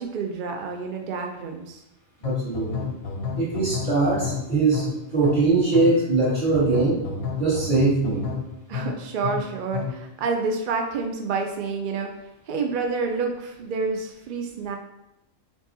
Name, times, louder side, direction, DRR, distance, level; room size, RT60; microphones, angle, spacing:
voice 1, 0.0-1.8 8.7-12.1 12.5-14.8, right 4 dB, 70° right, 3 dB, 0.4 m, -28 dB
sound 1, 2.2-10.1, left 6 dB, 60° left, 0.7 m, -31 dB
voice 2, 2.2-2.9 3.4-4.9 5.1-7.0 7.4-8.2, right 3 dB, 35° right, -8 dB, 2.0 m, -21 dB
4.6 x 4.1 x 2.7 m, 0.88 s
omnidirectional pair, 1.4 m